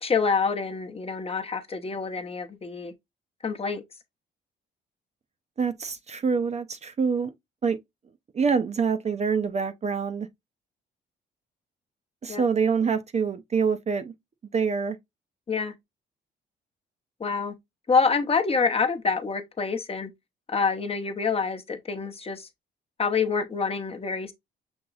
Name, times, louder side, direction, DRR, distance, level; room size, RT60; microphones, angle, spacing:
voice 1, 0.0-2.9 3.4-3.8 12.3-12.4 15.5-15.7 17.2-17.6 17.9-20.1 20.5-22.5 23.0-24.3, left 5 dB, 30° left, 0.8 m, -26 dB
voice 2, 5.6-7.3 7.6-7.8 8.3-10.3 12.2-14.1 14.5-15.0, right 5 dB, 35° right, 0.5 m, -25 dB
6.2 x 2.9 x 2.3 m
cardioid pair, 90°, 20 cm